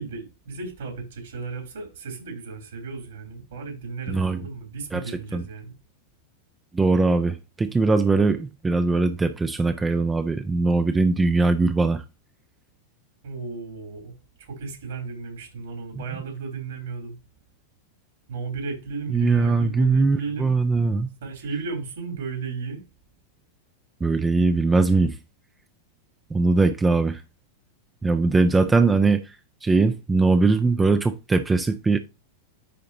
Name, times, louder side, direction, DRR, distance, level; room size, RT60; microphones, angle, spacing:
voice 1, 0.0-5.7 13.2-14.1 14.4-17.1 18.3-20.5 21.2-22.8, right 4 dB, 65° right, 3.4 m, -34 dB
voice 2, 4.1-4.4 4.9-5.4 6.7-12.0 16.0-16.1 19.1-21.1 24.0-25.2 26.3-27.2 28.0-29.4 29.6-32.0, right 3 dB, 10° right, 0.5 m, -21 dB
10.0 x 3.8 x 2.9 m
figure-of-eight pair, 90°, 0 cm